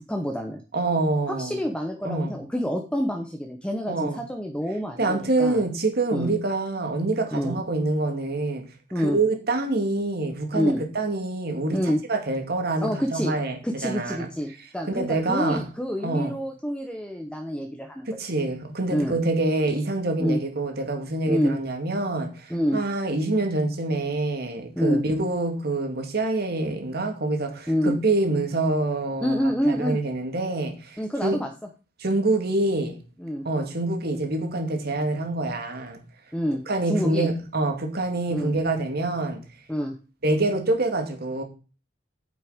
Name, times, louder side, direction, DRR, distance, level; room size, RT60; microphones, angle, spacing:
voice 1, 0.1-0.6 1.3-5.6 6.1-6.3 7.3-7.6 8.9-9.2 10.5-10.8 11.7-12.0 12.8-13.3 13.6-18.1 18.9-19.2 20.2-20.4 21.3-21.6 22.5-22.8 24.8-25.0 27.7-28.0 29.2-30.0 31.0-31.5 33.2-33.5 36.3-37.3 38.3-38.5 39.7-40.0, equal, 5° left, 0.9 m, -27 dB
voice 2, 0.7-1.6 2.0-2.4 3.9-4.3 5.0-8.7 9.0-15.7 16.0-16.4 18.1-31.4 32.0-33.0 33.4-36.0 36.7-39.4 40.2-41.4, right 2 dB, 60° right, 2.2 m, -26 dB
9.0 x 6.9 x 5.1 m
head